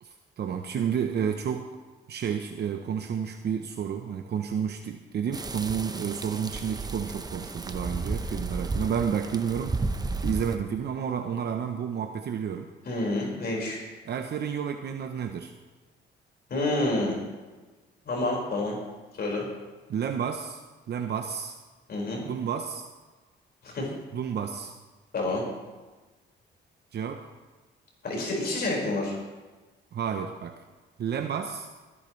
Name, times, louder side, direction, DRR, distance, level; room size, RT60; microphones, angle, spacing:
voice 1, 0.0-1.7 2.1-9.7 10.2-12.7 14.0-15.5 19.9-20.6 20.9-21.5 22.2-22.9 24.1-24.7 26.9-27.3 29.9-30.5 31.0-31.7, right 7 dB, 55° right, 5 dB, 0.8 m, -31 dB
sound 1, 5.3-10.6, right 3 dB, 20° right, 0.9 m, -33 dB
voice 2, 12.9-13.8 16.5-17.2 18.0-18.8 19.2-19.5 21.9-22.2 23.6-23.9 25.1-25.4 28.0-29.2, left 2 dB, 55° left, -2 dB, 5.1 m, -28 dB
20.0 x 11.0 x 3.2 m, 1.3 s
cardioid pair, 90°, 20 cm